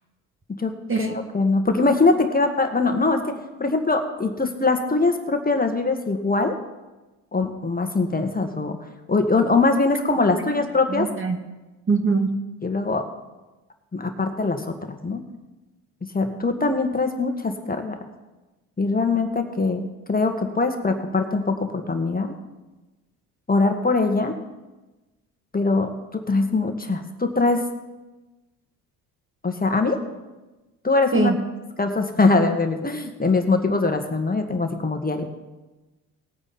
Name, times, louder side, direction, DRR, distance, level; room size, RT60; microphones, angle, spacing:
voice 1, 1.0-6.5 7.3-8.8 9.1-11.1 12.6-13.1 13.9-15.2 16.1-18.0 18.8-22.4 23.5-24.3 25.5-27.6 29.4-30.0 30.8-31.3 31.8-35.3, left 3 dB, 20° left, 5 dB, 1.8 m, -22 dB
voice 2, 10.9-11.4 11.9-12.3 31.1-31.4, right 4 dB, 30° right, 6 dB, 1.6 m, -22 dB
19.0 x 8.8 x 4.3 m, 1.1 s
hypercardioid pair, 65°, 44 cm